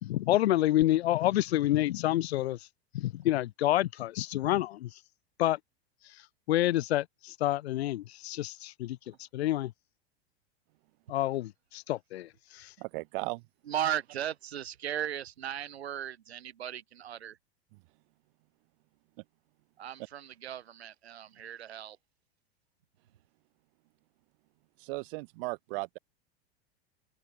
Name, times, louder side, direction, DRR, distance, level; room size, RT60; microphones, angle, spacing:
voice 1, 0.0-2.6 2.9-4.9 5.4-5.6 6.5-9.0 9.3-9.7 11.1-12.3 12.5-12.7, left 14 dB, 80° left, 0.6 m, -28 dB
voice 2, 12.8-13.4 17.7-17.8 24.8-26.0, right 25 dB, 60° right, 3.2 m, -36 dB
voice 3, 13.7-17.4 19.8-22.0, right 10 dB, 80° right, 3.9 m, -36 dB
hypercardioid pair, 100°, 31 cm